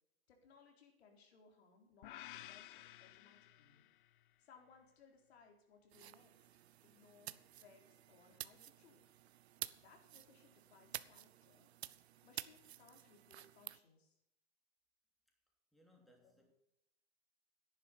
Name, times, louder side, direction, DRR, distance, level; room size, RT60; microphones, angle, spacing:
voice 1, 0.3-3.8 4.4-9.0 9.8-11.7 12.2-14.1, left 5 dB, 80° left, 4.0 m, -66 dB
sound 1, 2.0-4.2, left 14 dB, 55° left, 0.7 m, -54 dB
sound 2, 5.9-13.8, right 12 dB, 85° right, 0.8 m, -51 dB
voice 2, 15.3-16.5, left 1 dB, ahead, 2.8 m, -70 dB
11.5 x 10.5 x 5.7 m
hypercardioid pair, 135°, 31 cm